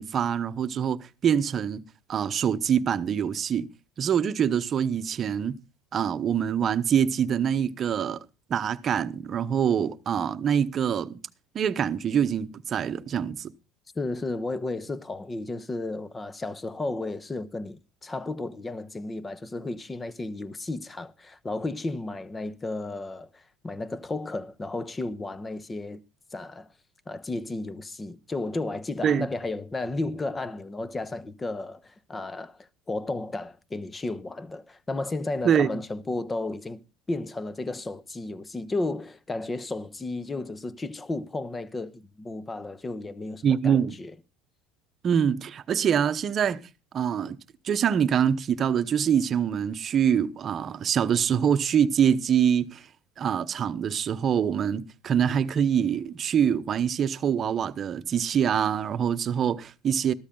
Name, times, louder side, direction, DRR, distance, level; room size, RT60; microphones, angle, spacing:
voice 1, 0.0-1.8 2.1-3.7 4.0-5.6 5.9-8.2 8.5-11.2 11.5-13.5 29.0-29.3 35.4-35.7 43.4-43.9 45.0-46.6 46.9-47.4 47.6-52.9 53.2-60.1, right 8 dB, 35° right, 1.0 m, -25 dB
voice 2, 13.9-26.0 26.3-26.7 27.1-36.8 37.1-44.1, left 2 dB, 15° left, 1.0 m, -33 dB
13.5 x 13.0 x 3.9 m
supercardioid pair, 120°, 0 cm